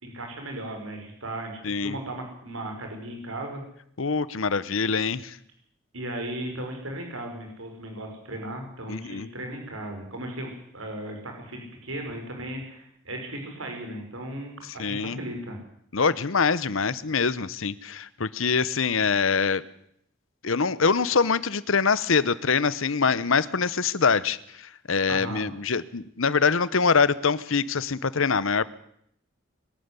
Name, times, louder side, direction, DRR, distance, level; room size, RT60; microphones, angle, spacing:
voice 1, 0.0-3.6 5.9-15.6 25.1-25.4, right 1 dB, 75° right, 3 dB, 5.4 m, -36 dB
voice 2, 1.6-2.0 4.0-5.4 8.9-9.3 14.8-15.2 15.9-19.6 20.4-28.6, left 5 dB, 70° left, 18 dB, 0.9 m, -24 dB
22.5 x 12.5 x 9.7 m, 0.70 s
head